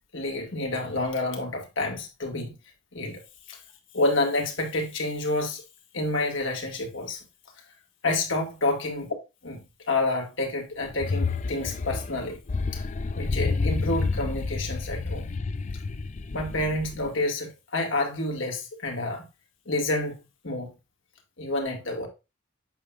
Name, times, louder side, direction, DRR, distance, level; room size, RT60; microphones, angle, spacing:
voice 1, 0.1-2.5 2.9-3.2 3.5-3.6 3.9-5.6 5.9-7.2 8.0-9.0 9.4-9.6 9.9-12.4 12.7-12.8 13.1-15.3 16.3-19.3 19.7-20.2 20.4-20.7 21.4-22.1, left 2 dB, 70° left, 1.9 m, -28 dB
sound 1, 10.8-17.2, left 4 dB, 35° left, 0.4 m, -30 dB
8.2 x 5.6 x 2.5 m
head